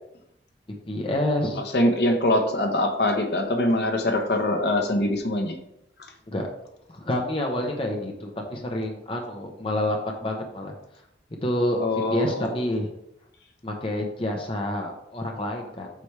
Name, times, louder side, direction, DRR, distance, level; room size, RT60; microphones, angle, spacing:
voice 1, 0.9-1.6 6.3-6.5 6.9-10.7 11.4-11.8 12.1-12.9 13.6-15.9, left 1 dB, 30° left, 1 dB, 0.9 m, -28 dB
voice 2, 1.5-5.6 11.8-12.7, left 1 dB, 60° left, 5 dB, 1.1 m, -23 dB
8.2 x 5.9 x 3.3 m, 0.80 s
head